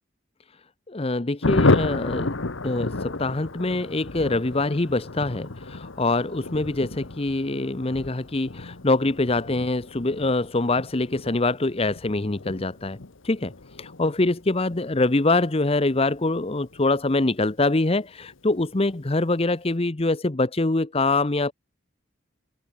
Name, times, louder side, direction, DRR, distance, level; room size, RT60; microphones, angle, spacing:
voice 1, 0.9-2.3 2.6-13.0 13.2-13.5 13.8-21.5, left 2 dB, 30° left, 0.8 m, -24 dB
Thunder, 1.4-17.5 17.8-17.9 18.2-18.3 18.6-19.0, left 2 dB, 75° left, 1.3 m, -31 dB
head